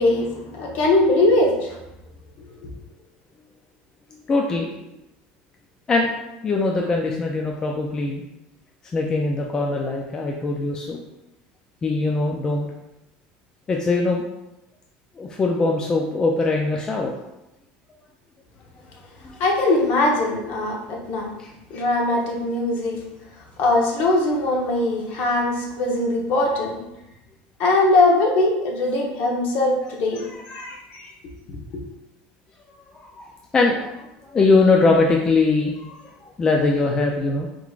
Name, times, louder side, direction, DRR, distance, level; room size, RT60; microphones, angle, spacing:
voice 1, 0.0-1.8 19.4-21.3 21.7-23.0 23.6-26.8 27.6-31.1, left 2 dB, 50° left, -1 dB, 1.0 m, -21 dB
voice 2, 4.3-4.7 5.9-6.1 6.4-8.2 8.9-11.0 11.8-12.7 13.7-14.2 15.2-17.1 19.2-19.4 21.4-21.5 30.2-30.4 33.0-36.0 36.4-37.5, left 3 dB, 20° left, 0 dB, 0.3 m, -21 dB
4.6 x 3.7 x 2.4 m, 0.92 s
cardioid pair, 160°, 4 cm